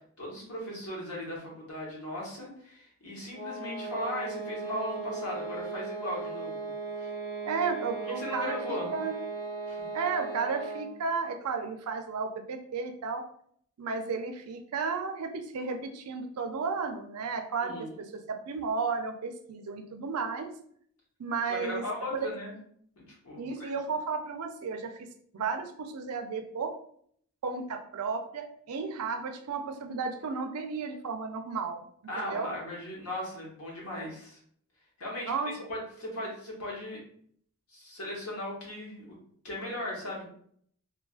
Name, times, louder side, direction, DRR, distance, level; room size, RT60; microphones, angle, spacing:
voice 1, 0.2-6.7 7.0-7.1 8.0-9.0 9.7-9.9 17.6-18.0 21.5-22.5 23.1-23.7 32.1-34.4 35.0-37.0 37.7-39.1 39.4-40.2, left 1 dB, 75° left, -3 dB, 1.1 m, -38 dB
sound 1, 3.3-11.0, right 4 dB, 40° left, 0.9 m, -37 dB
voice 2, 7.5-9.1 9.9-13.2 13.8-20.5 21.2-21.8 22.1-22.3 23.4-25.1 25.3-26.8 27.4-31.8 32.2-32.5 35.3-35.5, right 5 dB, 80° right, 6 dB, 0.4 m, -33 dB
3.2 x 2.3 x 2.3 m, 0.63 s
head